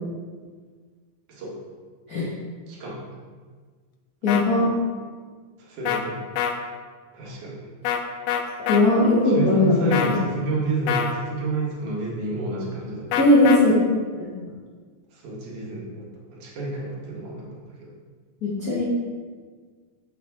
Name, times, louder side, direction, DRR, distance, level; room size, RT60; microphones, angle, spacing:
voice 1, 2.7-3.0 5.6-6.2 7.1-7.6 9.3-13.2 15.1-17.9, right 3 dB, 80° right, -4 dB, 2.9 m, -30 dB
voice 2, 4.2-4.6 8.7-10.1 13.1-13.9 14.2-14.3 18.4-18.8, left 2 dB, 55° left, -8 dB, 1.0 m, -19 dB
sound 1, 4.3-4.4 5.8-6.0 6.4-6.5 7.8-8.0 8.3-8.8 9.9-10.2 10.9-11.1 13.1-13.6, left 8 dB, 90° left, 1.4 m, -24 dB
7.2 x 5.9 x 3.5 m, 1.5 s
omnidirectional pair, 3.4 m